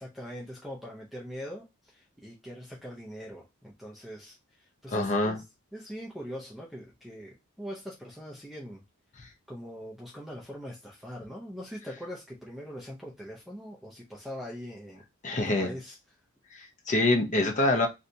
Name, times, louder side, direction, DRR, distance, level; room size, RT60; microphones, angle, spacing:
voice 1, 0.0-5.4 5.7-8.8 9.5-15.0 15.3-16.0, equal, ahead, 0.5 m, -42 dB
voice 2, 4.9-5.4 9.2-9.3 15.2-15.7 16.5-17.9, left 2 dB, 35° left, 0.7 m, -26 dB
3.2 x 2.6 x 2.6 m
head